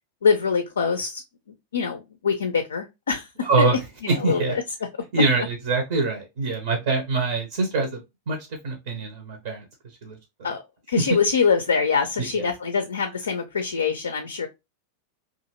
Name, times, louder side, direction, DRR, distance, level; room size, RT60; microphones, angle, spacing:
voice 1, 0.2-1.2 1.7-3.3 3.6-3.7 4.0-4.6 10.4-10.6 10.9-14.5, left 5 dB, 70° left, 0.4 m, -24 dB
voice 2, 3.4-3.8 4.1-4.6 5.1-8.0 8.3-8.4 8.6-9.6 10.0-10.2 12.2-12.5, right 3 dB, 55° right, 0.7 m, -24 dB
2.7 x 2.4 x 2.8 m
figure-of-eight pair, 90°, 0 cm